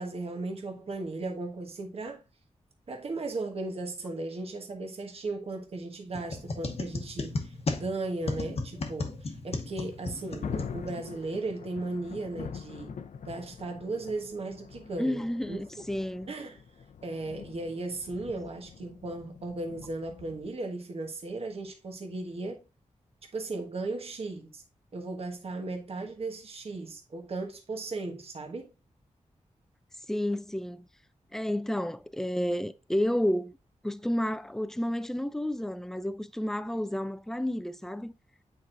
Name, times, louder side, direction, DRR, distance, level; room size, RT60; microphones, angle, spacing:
voice 1, 0.0-2.2 2.9-12.9 13.2-15.6 16.3-16.6 17.0-22.6 23.3-24.6 24.9-28.7, right 3 dB, 50° right, 1.2 m, -36 dB
sound 1, 6.1-11.2, left 3 dB, 50° left, 0.9 m, -35 dB
Thunder, 9.8-20.5, left 6 dB, 80° left, 0.6 m, -44 dB
voice 2, 15.0-16.3 30.1-30.9 31.3-33.5 33.8-38.1, left 1 dB, 5° left, 0.4 m, -31 dB
8.3 x 4.6 x 2.5 m
wide cardioid pair, 135°, 13 cm